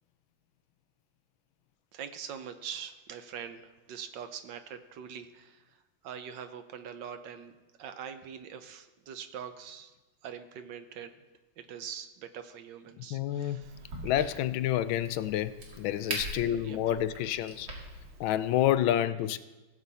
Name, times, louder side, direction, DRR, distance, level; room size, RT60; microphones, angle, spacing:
voice 1, 1.9-5.8 6.0-9.9 10.2-11.1 11.6-14.0 16.6-17.0, right 8 dB, 70° right, 9 dB, 1.5 m, -43 dB
voice 2, 13.0-13.6 14.0-15.5 15.8-17.7 18.2-19.4, left 12 dB, 85° left, 14 dB, 1.4 m, -28 dB
Crack, 13.6-18.7, right 2 dB, 85° right, 2.9 m, -42 dB
17.5 x 8.0 x 4.2 m, 1.1 s
omnidirectional pair, 2.1 m